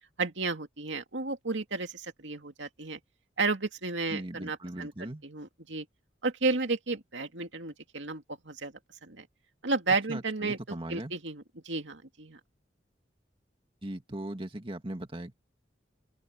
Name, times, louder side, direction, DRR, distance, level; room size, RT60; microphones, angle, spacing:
voice 1, 0.2-3.0 3.4-5.9 6.2-8.7 9.0-9.3 9.6-12.4, right 3 dB, 85° right, 2.4 m, -33 dB
voice 2, 4.1-5.2 10.1-11.1 13.8-15.3, right 1 dB, 30° right, 2.0 m, -39 dB
open air
head